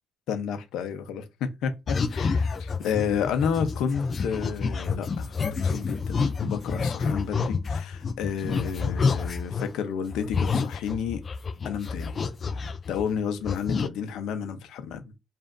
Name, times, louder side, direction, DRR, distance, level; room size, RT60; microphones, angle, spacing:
voice 1, 0.3-11.2 11.6-12.1 12.5-15.0, left 7 dB, 85° left, 0.7 m, -31 dB
sound 1, 1.9-9.7 10.1-13.2 13.4-13.9, left 5 dB, 45° left, 0.3 m, -28 dB
5.1 x 2.5 x 2.5 m
cardioid pair, 90°, 0 cm